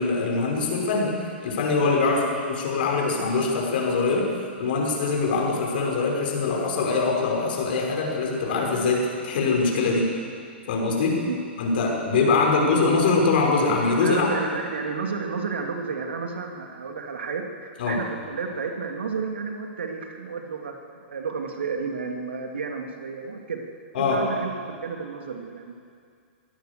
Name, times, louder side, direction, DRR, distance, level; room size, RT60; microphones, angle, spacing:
voice 1, 0.0-4.3 4.6-10.1 10.7-11.2 11.6-14.3 17.8-18.0 23.9-24.2, left 4 dB, 55° left, 0 dB, 5.6 m, -23 dB
voice 2, 14.0-20.7 21.0-23.6 24.0-25.7, right 5 dB, 70° right, 3 dB, 2.9 m, -31 dB
23.5 x 17.5 x 6.8 m, 2.2 s
figure-of-eight pair, 110°, 6 cm